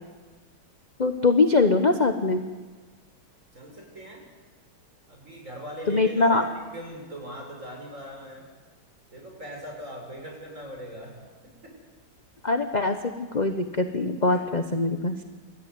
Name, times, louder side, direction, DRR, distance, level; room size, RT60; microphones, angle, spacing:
voice 1, 1.0-2.4 5.9-6.4 12.4-15.2, left 3 dB, 30° left, 7 dB, 0.9 m, -22 dB
voice 2, 3.5-4.3 5.1-6.5 6.7-8.5 9.1-11.8 14.3-14.4, equal, 35° right, 0 dB, 7.2 m, -40 dB
28.0 x 14.5 x 9.5 m, 1.3 s
omnidirectional pair, 2.2 m